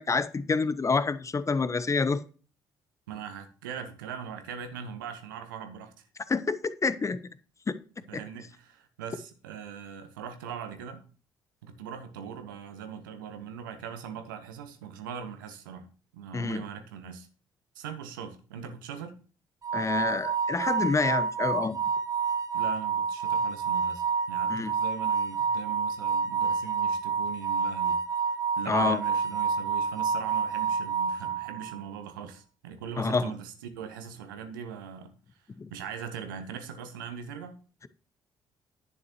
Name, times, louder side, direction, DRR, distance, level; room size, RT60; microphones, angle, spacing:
voice 1, 0.0-2.2 6.3-7.2 16.3-16.6 19.7-21.8 24.5-24.7 28.7-29.0 33.0-33.3 35.6-35.7, left 4 dB, 30° left, 0.9 m, -27 dB
voice 2, 3.1-6.1 8.1-11.0 11.6-15.9 16.1-17.3 17.7-19.2 22.5-28.0 28.6-35.1 35.7-37.6, right 7 dB, 75° right, 1.2 m, -41 dB
sound 1, 19.6-31.9, right 6 dB, 30° right, 1.2 m, -29 dB
11.0 x 9.6 x 3.1 m
figure-of-eight pair, 45°, 11 cm